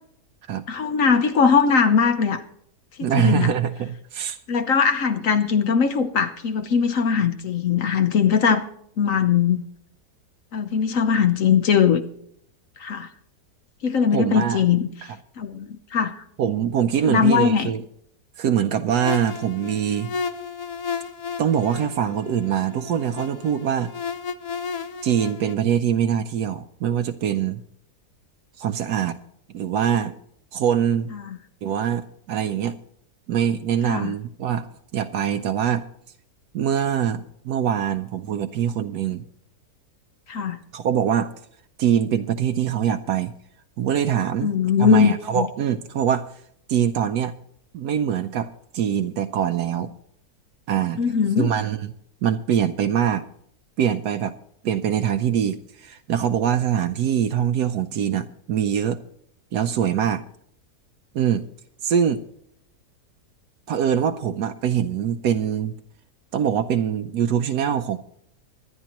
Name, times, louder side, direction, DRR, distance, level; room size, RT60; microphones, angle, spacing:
voice 1, 0.7-2.4 3.0-3.5 4.5-8.6 9.0-9.6 10.5-12.0 12.8-13.1 13.8-14.9 15.4-16.2 17.1-17.7 31.2-31.4 33.9-34.1 40.3-40.6 44.4-45.5 51.0-51.5, left 6 dB, 60° left, 8 dB, 1.1 m, -20 dB
voice 2, 3.0-4.4 14.1-14.6 16.4-17.8 18.4-20.1 21.4-23.9 25.0-27.6 28.6-29.2 29.5-30.1 30.5-31.1 31.6-32.8 33.3-35.8 36.5-39.2 40.7-41.3 41.8-43.3 43.8-44.5 44.8-46.2 46.7-47.3 47.7-48.5 48.7-49.9 50.7-51.0 51.4-51.9 52.2-53.3 53.8-54.3 54.6-59.0 59.5-60.2 61.1-61.4 61.8-62.2 63.7-65.7 66.3-68.0, right 9 dB, 80° right, 7 dB, 1.2 m, -23 dB
sound 1, 18.9-25.5, left 6 dB, 90° left, 0.3 m, -33 dB
23.5 x 9.9 x 3.0 m, 0.69 s
omnidirectional pair, 1.7 m